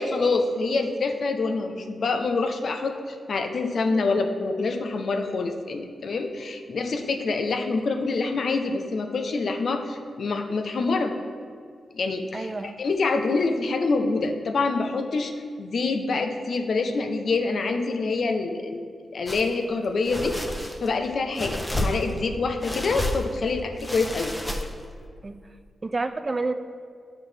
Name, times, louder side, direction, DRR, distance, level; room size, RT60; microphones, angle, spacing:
voice 1, 0.0-11.1 11.9-15.3 15.6-18.8 19.1-20.3 20.8-24.3, left 3 dB, 65° left, 5 dB, 0.6 m, -26 dB
voice 2, 12.3-12.7 25.2-25.4 25.8-26.5, right 3 dB, 40° right, 9 dB, 0.5 m, -28 dB
sound 1, 19.3-19.5 20.0-20.9 21.3-22.3 22.6-23.4 23.8-24.9, left 1 dB, 15° left, 0.9 m, -31 dB
8.8 x 5.9 x 3.3 m, 2.1 s
supercardioid pair, 45°, 0 cm